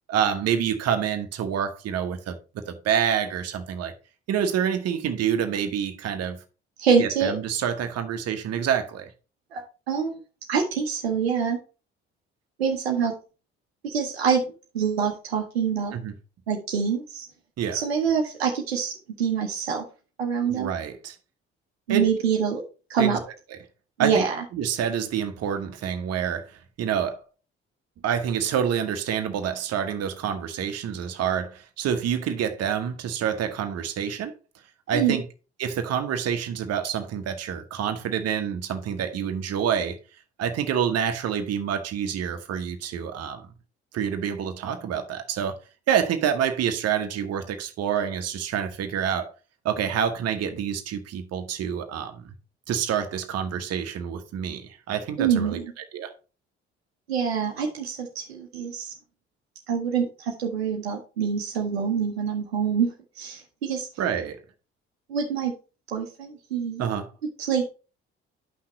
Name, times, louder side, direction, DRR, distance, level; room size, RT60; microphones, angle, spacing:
voice 1, 0.1-2.4 2.7-3.9 4.3-6.4 7.0-9.1 15.9-16.1 17.6-17.8 20.5-21.2 21.9-22.1 23.0-23.2 24.0-24.2 24.5-27.2 28.0-34.3 34.9-35.2 35.6-40.0 40.4-43.5 43.9-45.6 45.9-49.3 49.6-52.3 52.7-55.6 55.9-56.1 64.0-64.4 66.8-67.1, right 8 dB, 55° right, 1.3 m, -27 dB
voice 2, 6.8-7.3 9.5-10.2 10.5-11.6 12.6-13.1 13.8-14.4 14.7-16.0 16.5-17.3 17.7-19.9 20.2-20.7 21.9-22.6 22.9-23.2 24.0-24.4 34.9-35.2 55.2-55.7 57.1-58.9 59.7-63.9 65.1-65.5 65.9-66.8 67.4-67.7, right 7 dB, 80° right, 1.0 m, -25 dB
10.5 x 5.8 x 3.1 m
figure-of-eight pair, 45°, 31 cm